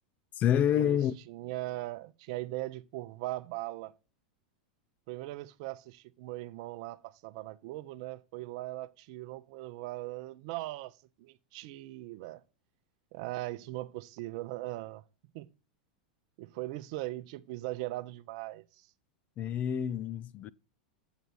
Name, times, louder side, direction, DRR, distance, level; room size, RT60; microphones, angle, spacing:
voice 1, 0.4-1.1 19.4-20.5, left 10 dB, 35° left, 0.4 m, -28 dB
voice 2, 1.3-3.9 5.1-12.4 13.1-15.0 15.3-15.5 16.4-18.9, right 17 dB, 60° right, 0.6 m, -39 dB
8.0 x 4.0 x 6.1 m
hypercardioid pair, 105°, 4 cm